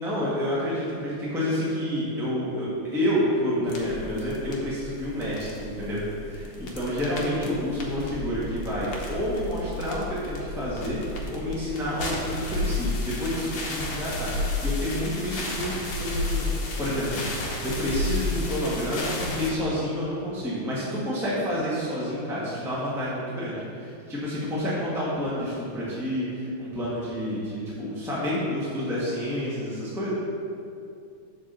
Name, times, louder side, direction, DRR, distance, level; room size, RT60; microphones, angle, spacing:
voice 1, 0.0-15.7 16.0-16.5 16.8-30.1, equal, ahead, -9 dB, 1.3 m, -29 dB
sound 1, 3.7-19.5, left 2 dB, 65° left, 1.7 m, -32 dB
7.5 x 4.1 x 6.7 m, 2.5 s
omnidirectional pair, 2.3 m